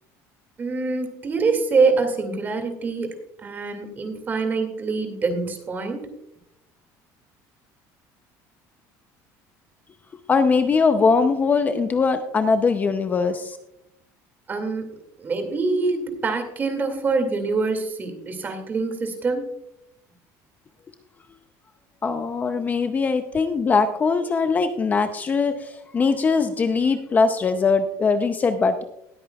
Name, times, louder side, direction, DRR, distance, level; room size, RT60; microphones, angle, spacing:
voice 1, 0.6-3.1 3.4-6.1 14.5-14.8 15.2-19.5, right 4 dB, 25° right, 6 dB, 2.2 m, -25 dB
voice 2, 10.3-13.6 22.0-28.8, left 4 dB, 25° left, 9 dB, 0.6 m, -21 dB
20.0 x 8.7 x 2.3 m, 0.81 s
cardioid pair, 145°, 7 cm